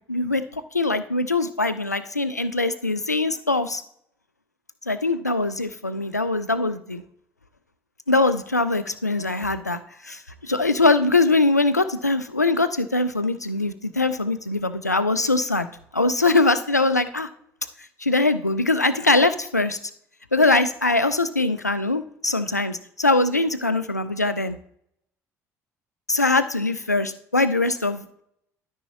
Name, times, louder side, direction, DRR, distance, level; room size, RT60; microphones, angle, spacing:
voice 1, 0.1-3.8 4.9-7.0 8.1-15.7 15.9-17.3 18.0-19.8 20.3-24.6 26.1-28.0, left 2 dB, 90° left, 12 dB, 0.4 m, -22 dB
13.0 x 5.5 x 2.7 m, 0.69 s
figure-of-eight pair, 50°, 9 cm